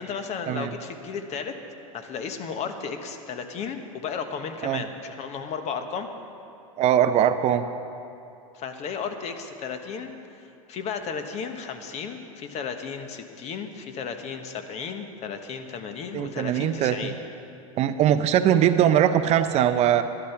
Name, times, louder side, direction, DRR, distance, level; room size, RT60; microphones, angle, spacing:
voice 1, 0.0-1.5 1.9-6.1 8.5-17.2, left 6 dB, 40° left, 7 dB, 1.2 m, -34 dB
voice 2, 6.8-7.7 16.1-17.1 17.8-20.0, right 10 dB, 35° right, 10 dB, 0.6 m, -21 dB
11.5 x 11.5 x 5.8 m, 2.7 s
hypercardioid pair, 105°, 18 cm